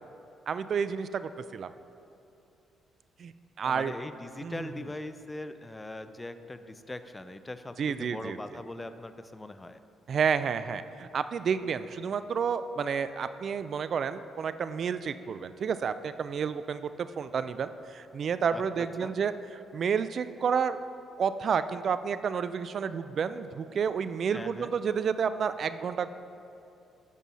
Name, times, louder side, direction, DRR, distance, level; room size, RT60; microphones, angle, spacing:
voice 1, 0.5-1.7 3.2-3.9 4.4-4.7 7.8-8.4 10.1-20.8 21.2-26.1, right 6 dB, 55° right, 12 dB, 0.4 m, -30 dB
voice 2, 3.6-9.8 18.5-19.1 24.3-24.7, left 2 dB, 15° left, 10 dB, 0.4 m, -41 dB
13.5 x 5.4 x 4.2 m, 2.7 s
cardioid pair, 90°, 0 cm